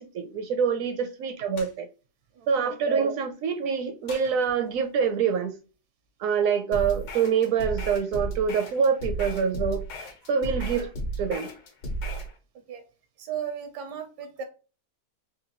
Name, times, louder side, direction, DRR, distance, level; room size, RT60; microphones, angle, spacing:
voice 1, 0.0-1.9 2.5-5.6 6.2-9.8 10.3-10.9 11.2-11.5, right 6 dB, 70° right, 0.8 m, -25 dB
sound 1, 1.6-1.8 4.1-5.0, left 4 dB, 85° left, 1.5 m, -47 dB
voice 2, 2.3-2.7 12.5-12.8 13.2-14.4, right 8 dB, 85° right, 1.4 m, -36 dB
sound 2, 6.7-12.3, right 2 dB, 70° left, 1.5 m, -33 dB
3.9 x 2.8 x 2.9 m
omnidirectional pair, 1.8 m